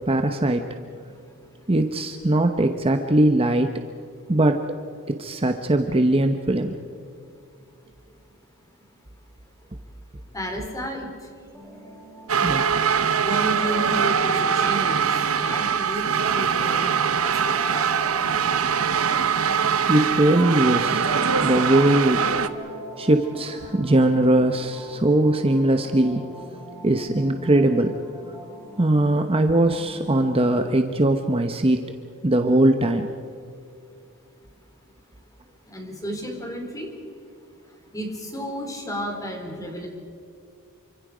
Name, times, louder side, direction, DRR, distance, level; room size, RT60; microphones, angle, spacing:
voice 1, 0.1-0.6 1.7-3.7 4.3-4.6 5.1-6.7 12.4-12.7 19.9-21.2 21.4-26.2 26.8-27.9 28.8-31.8 32.2-33.1, right 1 dB, 25° right, 6 dB, 0.9 m, -20 dB
voice 2, 10.3-11.1 13.1-18.6 35.7-36.9 37.9-39.9, equal, 15° left, 2 dB, 4.1 m, -32 dB
sound 1, 11.5-30.7, right 1 dB, ahead, 6.2 m, -42 dB
sound 2, 12.3-22.5, right 7 dB, 80° right, 1.0 m, -22 dB
28.5 x 25.5 x 5.1 m, 2.4 s
head